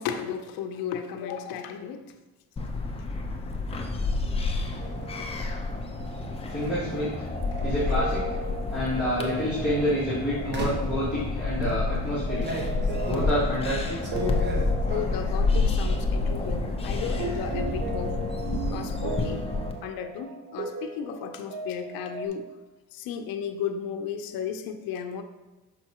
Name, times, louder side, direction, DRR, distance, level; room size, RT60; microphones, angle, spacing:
voice 1, 0.0-2.1 3.7-3.8 4.7-4.8 6.6-6.7 14.9-18.2 18.7-19.4 19.8-22.5 22.9-25.2, left 7 dB, 75° left, 6 dB, 0.7 m, -34 dB
sound 1, 2.6-19.7, left 3 dB, 15° left, 0.7 m, -29 dB
sound 2, 4.2-4.8 6.5-6.8 7.5-8.3 9.1-9.4 10.5-11.0 11.6-15.4 15.7-16.3 16.5-17.1, equal, 30° right, 1.2 m, -35 dB
sound 3, 4.8-22.3, right 2 dB, 90° right, 1.1 m, -38 dB
voice 2, 6.5-7.3 7.6-8.2 8.7-12.5 13.1-14.1, equal, 5° right, -11 dB, 2.2 m, -28 dB
6.3 x 5.6 x 2.9 m, 1.1 s
cardioid pair, 115°, 35 cm